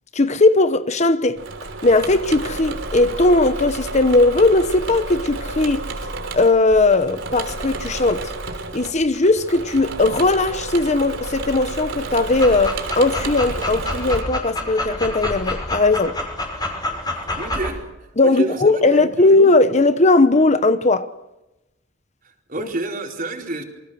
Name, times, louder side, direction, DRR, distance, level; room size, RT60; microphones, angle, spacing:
voice 1, 0.1-1.4 1.8-5.8 6.3-8.3 8.7-16.2 18.2-21.1 22.6-22.7, left 2 dB, 35° left, 1.0 m, -18 dB
Engine / Mechanisms, 1.3-14.2, right 3 dB, 85° right, 3.3 m, -31 dB
Dog, 12.3-17.7, left 1 dB, 20° left, 5.8 m, -28 dB
voice 2, 17.4-17.9 18.2-19.3 22.2-23.6, right 2 dB, 45° right, 4.4 m, -29 dB
28.0 x 24.5 x 6.3 m
head